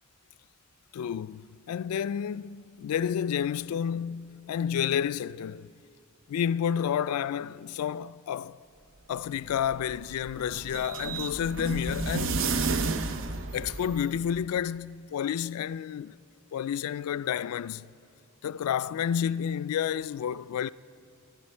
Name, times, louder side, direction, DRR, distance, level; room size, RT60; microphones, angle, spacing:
voice 1, 0.9-5.7 6.3-8.6 9.1-12.4 13.5-16.2 16.5-17.9 18.4-20.7, left 8 dB, 85° left, 0.3 m, -30 dB
sound 1, 9.3-14.3, right 4 dB, 60° right, 0.6 m, -32 dB
23.0 x 11.5 x 4.4 m
head